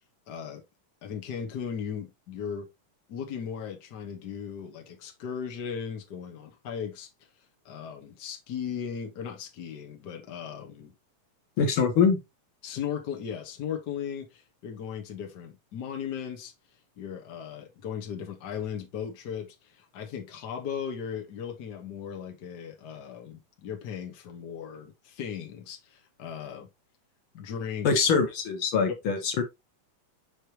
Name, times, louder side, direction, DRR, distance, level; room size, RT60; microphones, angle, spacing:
voice 1, 0.3-0.6 1.0-2.7 3.1-7.1 7.6-10.9 12.6-16.5 17.0-26.7 27.3-28.0, left 7 dB, 75° left, 0.9 m, -37 dB
voice 2, 11.6-12.2 27.8-29.4, left 5 dB, 60° left, 1.5 m, -23 dB
6.5 x 5.0 x 2.9 m
omnidirectional pair, 3.7 m